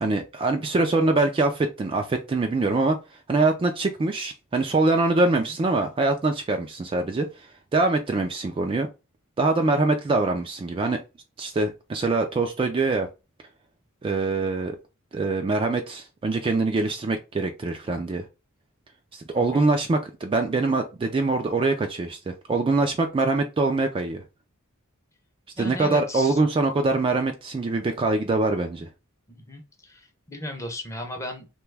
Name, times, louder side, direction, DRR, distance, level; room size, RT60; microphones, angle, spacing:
voice 1, 0.0-3.0 3.3-8.9 9.4-11.0 11.4-13.1 14.0-14.8 15.1-18.3 19.1-24.2 25.6-28.9, right 3 dB, 25° right, 4 dB, 0.3 m, -24 dB
voice 2, 25.6-26.4 29.3-31.6, left 1 dB, 15° left, 3 dB, 0.6 m, -36 dB
2.9 x 2.2 x 3.2 m, 0.28 s
head